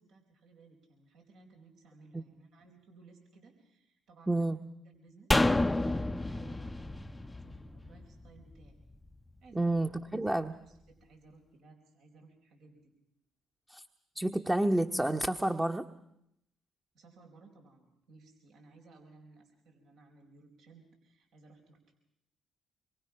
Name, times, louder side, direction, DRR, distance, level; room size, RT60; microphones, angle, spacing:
voice 1, 0.0-4.5 4.8-8.8 9.4-9.7 10.3-10.4 10.7-12.9 16.9-21.9, right 3 dB, 70° right, 1 dB, 4.5 m, -59 dB
voice 2, 4.3-4.6 9.5-10.5 13.7-13.8 14.1-15.9, right 1 dB, 10° right, 4 dB, 1.2 m, -29 dB
sound 1, 5.3-8.6 8.9-9.0, left 2 dB, 15° left, 0.8 m, -30 dB
25.5 x 22.5 x 5.9 m, 0.78 s
supercardioid pair, 55°, 0 cm